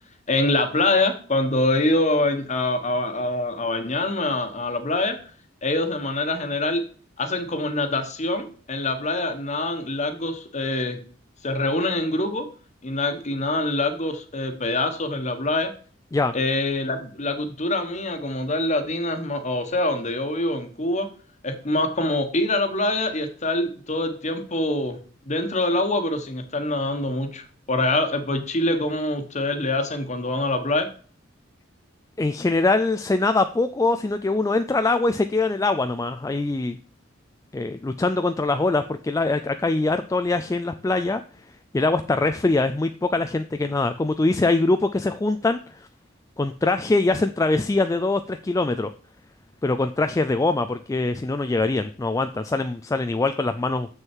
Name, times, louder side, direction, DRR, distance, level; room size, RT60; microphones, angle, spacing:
voice 1, 0.3-5.2 5.6-6.8 7.2-11.0 11.4-12.5 12.8-15.7 16.3-21.1 21.4-25.0 25.3-30.9, left 2 dB, 40° left, 7 dB, 1.3 m, -25 dB
voice 2, 32.2-36.8 37.5-41.2 41.7-45.6 46.4-48.9 49.6-53.9, left 3 dB, 15° left, 9 dB, 0.3 m, -23 dB
7.3 x 6.5 x 4.6 m, 0.42 s
head